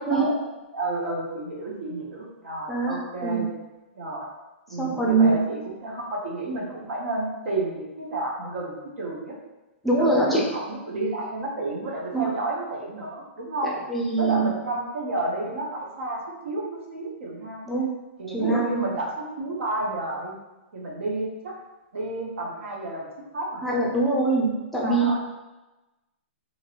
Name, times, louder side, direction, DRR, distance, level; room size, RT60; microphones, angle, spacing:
voice 1, 0.1-0.4 0.7-3.5 3.9-4.3 4.7-9.4 10.0-13.8 14.2-17.6 18.2-20.4 20.7-21.5 21.9-23.8 24.8-25.2, right 2 dB, 75° right, -2 dB, 0.9 m, -31 dB
voice 2, 4.8-5.4 9.8-10.4 12.1-12.3 13.9-14.5 17.7-17.9 18.3-18.8 23.6-25.2, right 3 dB, 5° left, -4 dB, 0.5 m, -22 dB
3.0 x 2.6 x 2.9 m, 1.1 s
hypercardioid pair, 145°, 7 cm